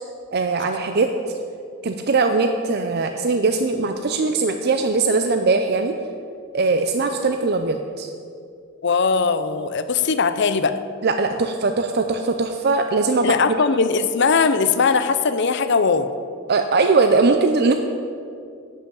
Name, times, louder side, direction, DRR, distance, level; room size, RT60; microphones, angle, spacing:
voice 1, 0.3-1.1 1.8-6.0 6.5-8.1 11.0-13.4 16.5-17.7, right 3 dB, 50° right, 6 dB, 0.5 m, -20 dB
voice 2, 8.8-10.7 13.2-16.1, left 5 dB, 55° left, 11 dB, 0.6 m, -19 dB
11.5 x 5.6 x 8.2 m, 2.3 s
head